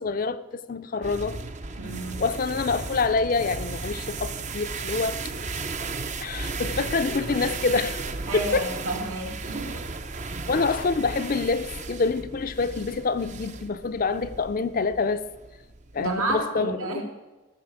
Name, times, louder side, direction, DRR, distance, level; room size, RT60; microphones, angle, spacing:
voice 1, 0.0-1.4 2.2-5.3 6.2-8.0 8.3-8.7 10.5-15.2 15.9-17.0, left 4 dB, 40° left, 0.4 m, -26 dB
sound 1, 1.0-16.4, right 3 dB, 35° right, 0.6 m, -35 dB
voice 2, 1.8-2.2 8.3-9.8 10.1-10.2 16.0-17.0, right 2 dB, 80° right, 2.5 m, -31 dB
14.5 x 6.7 x 6.4 m
head